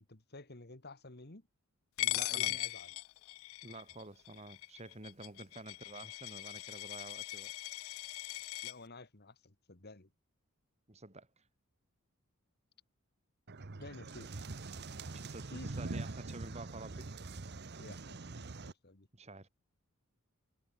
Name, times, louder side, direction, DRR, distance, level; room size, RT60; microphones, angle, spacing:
voice 1, 0.0-1.5 2.0-2.9 8.6-10.1 13.8-14.3 15.5-15.7 17.8-19.1, left 2 dB, 45° left, 2.1 m, -52 dB
Coin (dropping), 2.0-8.7, left 18 dB, 65° left, 0.3 m, -39 dB
voice 2, 2.1-2.7 3.6-7.5 10.9-11.5 15.1-17.1 19.1-19.5, right 2 dB, 30° right, 3.0 m, -50 dB
sound 1, 13.5-18.7, right 3 dB, 50° right, 0.9 m, -43 dB
head